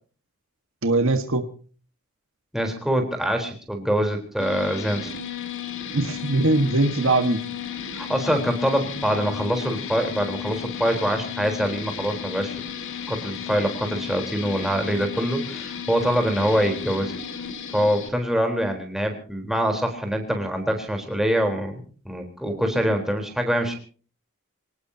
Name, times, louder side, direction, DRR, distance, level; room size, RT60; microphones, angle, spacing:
voice 1, 0.8-1.5 5.9-7.4, right 2 dB, 60° right, 8 dB, 1.6 m, -21 dB
voice 2, 2.5-5.1 7.9-12.6 13.1-17.1 17.7-23.8, equal, ahead, 3 dB, 4.0 m, -24 dB
sound 1, 4.4-18.1, left 8 dB, 60° left, 2.2 m, -34 dB
26.5 x 19.0 x 2.9 m, 0.41 s
head